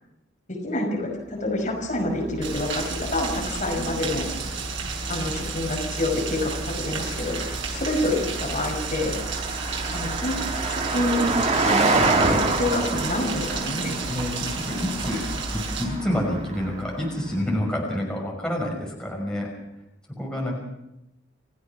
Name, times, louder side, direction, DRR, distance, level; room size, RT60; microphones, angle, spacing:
voice 1, 0.5-4.3 5.1-9.2 9.9-10.4 10.7-14.0, left 1 dB, 40° left, 1 dB, 5.7 m, -27 dB
Car passing by, 1.7-17.4, right 3 dB, 35° right, 2.2 m, -29 dB
Rain, 2.4-15.8, right 5 dB, 75° right, 7.2 m, -33 dB
voice 2, 14.1-15.2 15.8-19.5 20.2-20.5, left 1 dB, 5° left, -2 dB, 5.7 m, -28 dB
29.0 x 15.0 x 6.0 m, 0.86 s
head